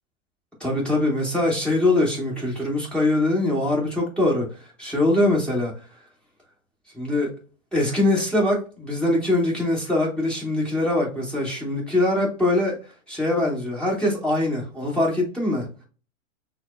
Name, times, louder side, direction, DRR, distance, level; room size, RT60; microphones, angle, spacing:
voice 1, 0.6-4.5 4.8-5.7 6.9-7.3 7.7-12.8 13.1-15.7, left 1 dB, ahead, 1.3 m, -22 dB
6.1 x 2.1 x 2.5 m
hypercardioid pair, 130°, 42 cm